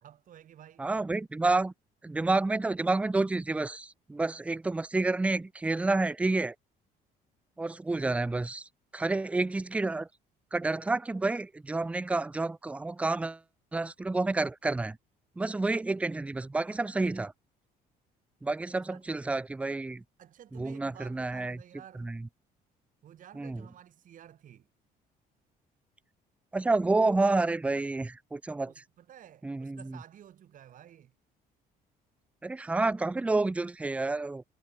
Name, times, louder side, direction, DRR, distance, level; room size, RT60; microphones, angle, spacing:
voice 1, 0.0-0.9 18.8-19.0 20.2-22.1 23.0-24.7 28.6-31.1, right 10 dB, 50° right, 1.4 m, -52 dB
voice 2, 0.8-1.7 2.0-6.5 7.6-8.7 8.9-10.1 10.5-13.4 13.7-15.0 15.4-17.3 18.4-20.0 20.5-21.6 22.0-22.2 23.4-23.6 26.5-28.7 29.4-30.0 32.4-34.4, right 3 dB, 10° right, 0.3 m, -29 dB
cardioid pair, 110°, 17 cm